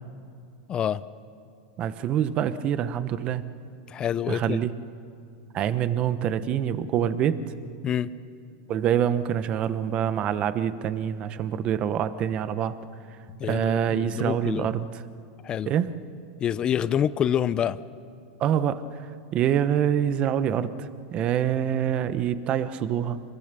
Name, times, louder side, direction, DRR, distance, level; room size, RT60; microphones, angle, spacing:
voice 1, 0.7-1.0 3.9-4.6 7.8-8.1 13.4-14.7 15.4-15.7 16.4-17.8, left 9 dB, 30° left, 16 dB, 0.6 m, -27 dB
voice 2, 1.8-3.4 4.3-4.7 5.5-7.4 8.7-12.8 13.4-14.9 15.7-16.0 18.4-23.2, right 9 dB, 40° right, 13 dB, 1.0 m, -26 dB
26.0 x 20.0 x 6.8 m, 2.4 s
supercardioid pair, 120°, 3 cm